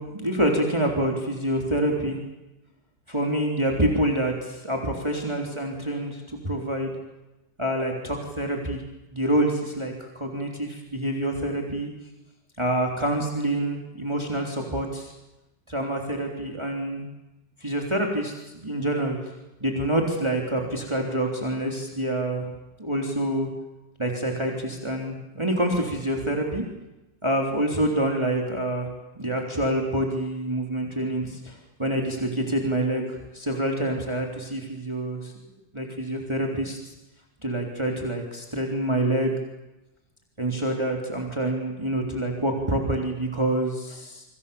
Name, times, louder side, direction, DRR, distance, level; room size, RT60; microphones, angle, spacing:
voice 1, 0.0-2.2 3.1-7.0 7.6-8.8 9.1-11.9 12.6-15.1 15.7-17.1 17.6-19.2 19.6-22.5 22.8-23.5 24.0-26.6 27.2-28.9 29.2-35.5 35.7-36.8 37.4-39.4 40.4-44.2, right 1 dB, 15° right, 1 dB, 3.6 m, -27 dB
28.5 x 25.0 x 7.1 m, 0.97 s
omnidirectional pair, 2.0 m